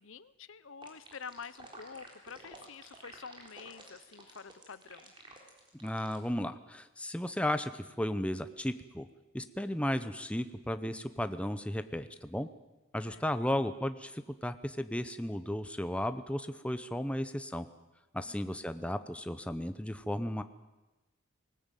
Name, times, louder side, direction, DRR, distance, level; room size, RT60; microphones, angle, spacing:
voice 1, 0.0-5.1 13.0-13.2 18.3-18.7, left 6 dB, 65° left, 16 dB, 0.8 m, -48 dB
sound 1, 0.8-6.3, right 2 dB, 25° right, 3.9 m, -51 dB
voice 2, 5.7-9.1 9.3-12.5 12.9-17.7 18.1-20.4, left 1 dB, 5° left, 10 dB, 0.7 m, -34 dB
20.0 x 19.5 x 9.2 m, 1.1 s
head